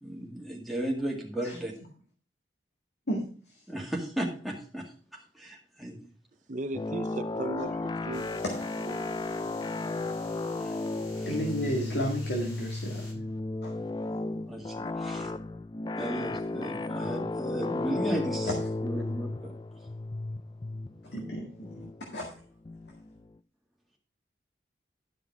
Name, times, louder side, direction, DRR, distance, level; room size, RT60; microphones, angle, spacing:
voice 1, 0.0-1.7 3.7-6.1 10.6-10.7 11.2-11.3 14.5-15.3 16.0-18.5 18.8-19.5, right 1 dB, ahead, 2.0 m, -35 dB
voice 2, 3.1-3.6 11.3-13.2 13.6-13.7 18.5-18.6 21.0-22.3, equal, 65° left, 1.9 m, -33 dB
voice 3, 6.5-8.4 8.8-9.1, right 1 dB, 40° right, 0.6 m, -37 dB
sound 1, 6.7-23.3, left 2 dB, 25° left, 0.3 m, -34 dB
sound 2, 8.1-13.1, left 2 dB, 90° left, 5.1 m, -51 dB
12.0 x 5.4 x 4.7 m
head